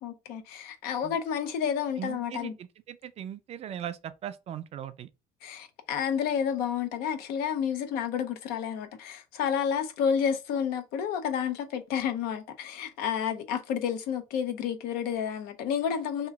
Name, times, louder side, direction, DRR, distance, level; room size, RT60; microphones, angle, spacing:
voice 1, 0.0-2.6 5.4-16.3, left 8 dB, 75° left, 0.7 m, -30 dB
voice 2, 2.0-5.1, right 10 dB, 40° right, 0.4 m, -39 dB
2.9 x 2.4 x 3.5 m
supercardioid pair, 100°, 16 cm